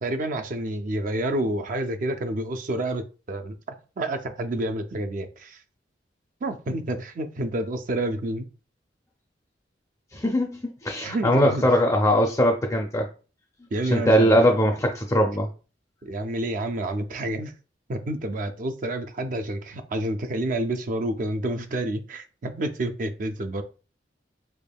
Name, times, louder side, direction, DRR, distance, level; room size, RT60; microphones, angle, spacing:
voice 1, 0.0-3.5 4.0-5.6 6.4-8.5 11.0-11.6 13.7-14.4 16.0-17.5 17.9-23.6, right 1 dB, 45° right, 8 dB, 0.4 m, -29 dB
voice 2, 10.1-13.1 13.8-15.5, equal, 15° left, 2 dB, 0.4 m, -21 dB
3.5 x 3.4 x 2.2 m, 0.35 s
head